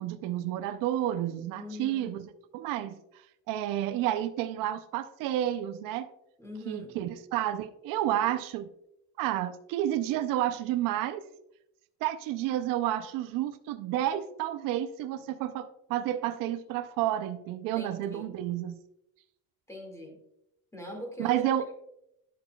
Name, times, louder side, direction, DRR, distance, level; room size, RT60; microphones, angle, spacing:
voice 1, 0.0-3.0 3.5-6.1 6.7-8.7 9.2-11.2 12.0-18.8 21.2-21.7, right 12 dB, 85° right, 11 dB, 0.6 m, -30 dB
voice 2, 1.6-2.2 6.4-7.0 17.8-18.3 19.7-20.2 20.7-21.7, left 1 dB, 10° left, 1 dB, 2.0 m, -42 dB
10.0 x 6.9 x 2.2 m, 0.83 s
cardioid pair, 130°, 32 cm